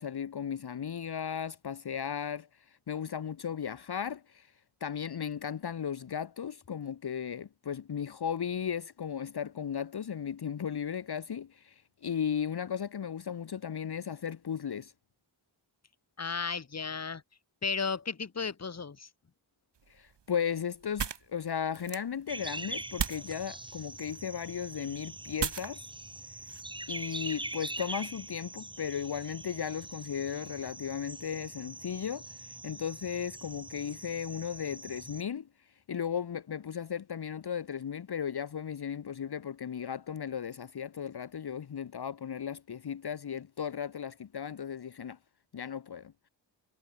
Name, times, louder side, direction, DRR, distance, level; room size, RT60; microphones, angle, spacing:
voice 1, 0.0-4.5 4.8-14.9 19.9-25.8 26.9-45.2 45.5-46.1, left 8 dB, 55° left, 1.2 m, -36 dB
voice 2, 16.2-17.2 17.6-19.1, left 5 dB, 35° left, 1.7 m, -34 dB
sound 1, 19.7-27.2, right 7 dB, 60° right, 2.2 m, -40 dB
sound 2, 22.3-35.2, right 2 dB, 10° right, 1.3 m, -43 dB
wide cardioid pair, 160°, 47 cm